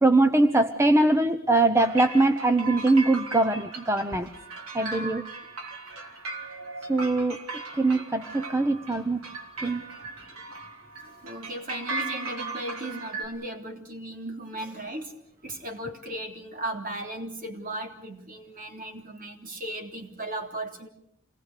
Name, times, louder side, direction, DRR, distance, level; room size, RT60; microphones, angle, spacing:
voice 1, 0.0-4.3 4.7-5.2 6.9-7.4 7.8-9.3 9.6-9.9, right 2 dB, 15° right, 8 dB, 0.9 m, -22 dB
sound 1, 1.8-13.2, right 3 dB, 85° right, 3.5 m, -38 dB
voice 2, 4.7-5.2 11.0-15.1 15.4-20.9, right 1 dB, 40° right, 4 dB, 3.3 m, -36 dB
27.5 x 20.0 x 6.7 m, 0.74 s
head